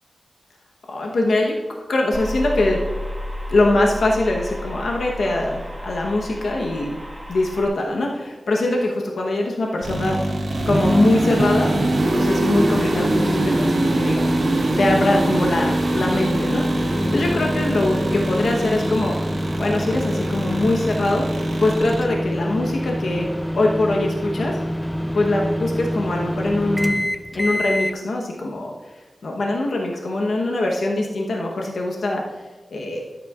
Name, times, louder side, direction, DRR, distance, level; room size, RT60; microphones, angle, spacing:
voice 1, 0.9-1.6 1.9-2.8 3.5-6.9 7.3-10.2 10.7-11.7 12.1-14.4 14.8-19.2 19.6-23.3 23.5-24.6 25.1-27.0 27.3-32.2 32.7-33.0, left 2 dB, 85° left, 0 dB, 1.0 m, -22 dB
sound 1, 2.1-7.7, left 1 dB, 10° right, 1.6 m, -32 dB
sound 2, 9.8-22.0, right 1 dB, 85° right, 1.8 m, -23 dB
sound 3, 10.7-28.0, equal, 5° left, 0.4 m, -27 dB
13.0 x 8.1 x 2.4 m, 1.3 s
wide cardioid pair, 90°, 0 cm